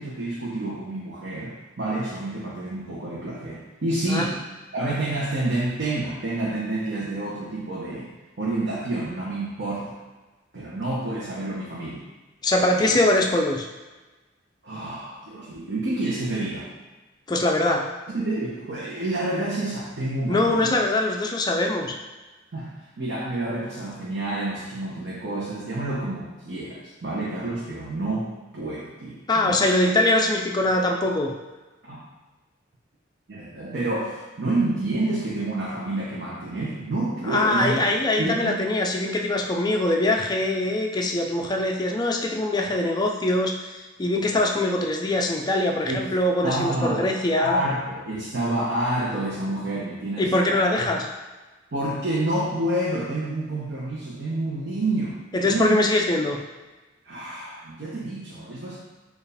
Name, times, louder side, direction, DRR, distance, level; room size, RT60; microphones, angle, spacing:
voice 1, 0.0-4.4 4.7-8.1 8.4-9.9 10.5-12.0 12.8-13.0 14.6-16.7 18.1-20.7 22.5-28.3 28.5-29.7 31.9-32.0 33.3-38.5 45.9-46.1 46.4-47.1 47.4-50.8 51.7-55.2 55.4-55.8 57.0-58.8, right 2 dB, 60° right, -7 dB, 0.7 m, -28 dB
voice 2, 12.4-13.7 17.3-17.8 20.3-21.9 29.3-31.3 37.3-43.7 44.0-47.6 50.2-51.1 55.3-56.4, left 1 dB, 20° left, 1 dB, 0.4 m, -22 dB
4.4 x 2.4 x 3.4 m, 1.2 s
head